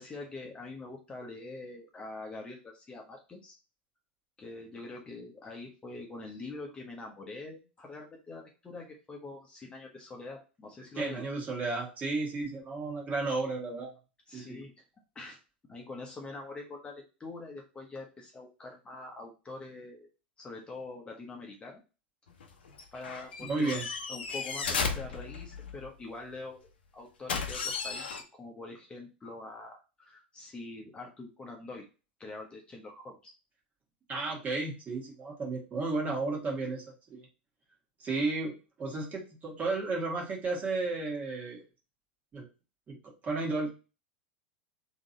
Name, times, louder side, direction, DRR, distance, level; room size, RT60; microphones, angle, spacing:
voice 1, 0.0-3.6 4.4-11.3 14.3-14.7 15.1-15.4 15.7-20.1 20.4-21.8 22.9-23.7 24.1-31.9 32.2-33.3, left 3 dB, 15° left, 0 dB, 1.0 m, -44 dB
voice 2, 10.9-13.9 14.3-14.6 23.4-23.9 34.1-37.3 38.0-41.6 42.3-42.5 42.9-43.7, right 3 dB, 25° right, -1 dB, 1.6 m, -33 dB
sound 1, 22.3-25.9 27.3-28.2, left 5 dB, 70° left, 0.8 m, -35 dB
3.7 x 3.0 x 3.9 m, 0.32 s
figure-of-eight pair, 90°, 6 cm